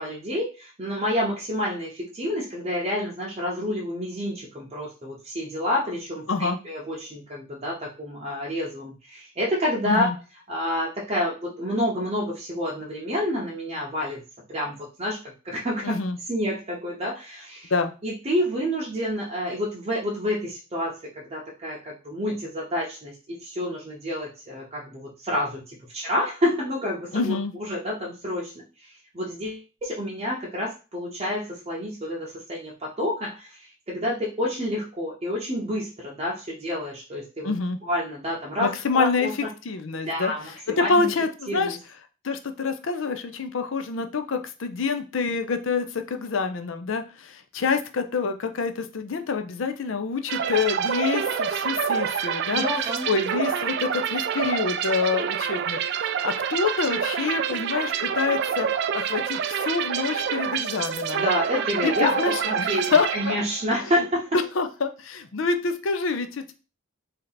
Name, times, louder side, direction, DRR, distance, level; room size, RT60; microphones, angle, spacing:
voice 1, 0.0-10.1 10.5-14.2 14.5-15.2 15.4-15.9 16.3-17.7 18.0-37.5 37.8-38.7 38.9-39.3 39.9-41.1 41.5-41.8 52.5-53.1 61.1-64.3, left 1 dB, 30° right, -4 dB, 0.7 m, -29 dB
voice 2, 15.8-16.2 17.7-17.9 27.1-27.5 37.4-37.8 38.6-39.3 39.6-41.8 42.2-52.6 53.1-55.9 56.2-58.7 58.9-61.2 61.8-63.4 64.6-66.5, left 4 dB, 70° left, 7 dB, 0.5 m, -26 dB
sound 1, 50.3-63.8, right 8 dB, 55° right, 0.3 m, -27 dB
3.3 x 2.8 x 3.9 m, 0.33 s
head